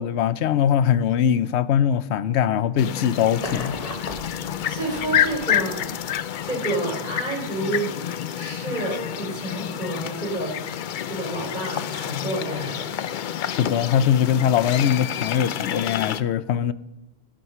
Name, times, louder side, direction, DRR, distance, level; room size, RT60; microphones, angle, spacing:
voice 1, 0.0-3.8 13.5-16.7, left 9 dB, 90° left, 0.9 m, -21 dB
sound 1, 2.8-16.2, left 10 dB, 60° left, 0.6 m, -29 dB
sound 2, 3.3-6.4 7.5-7.6, left 2 dB, 35° left, 1.3 m, -37 dB
voice 2, 4.5-5.9 6.4-7.8 8.3-10.5 11.1-12.9, right 1 dB, 45° right, 4.0 m, -29 dB
15.5 x 6.2 x 5.6 m
omnidirectional pair, 1.1 m